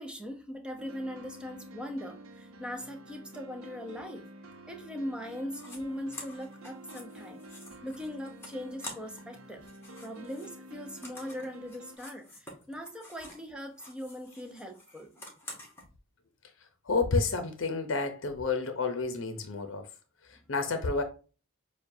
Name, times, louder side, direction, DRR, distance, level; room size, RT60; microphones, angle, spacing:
voice 1, 0.0-4.3 4.7-7.4 7.8-9.6 10.0-15.1, equal, 5° right, 0.6 m, -40 dB
sound 1, 0.8-12.0, right 1 dB, 85° right, 0.7 m, -49 dB
sound 2, 5.5-5.8 6.1-9.3 9.6-13.5 13.7-15.8, left 2 dB, 10° left, 1.1 m, -48 dB
voice 2, 16.8-19.9 20.2-21.0, left 4 dB, 65° left, 0.7 m, -30 dB
6.9 x 2.3 x 2.6 m
head